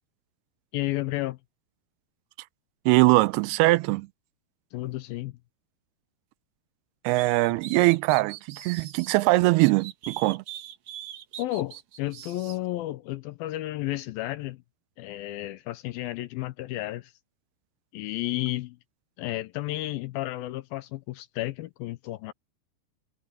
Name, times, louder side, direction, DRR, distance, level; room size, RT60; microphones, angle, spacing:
voice 1, 0.7-1.4 4.7-5.4 7.5-7.6 11.4-14.6 15.0-17.1 17.9-18.8 19.2-22.3, left 16 dB, 80° left, 2.4 m, -32 dB
voice 2, 2.9-4.1 7.0-10.4, right 21 dB, 85° right, 2.5 m, -22 dB
sound 1, 7.1-9.2 9.6-12.6, right 10 dB, 55° right, 2.2 m, -42 dB
omnidirectional pair, 4.6 m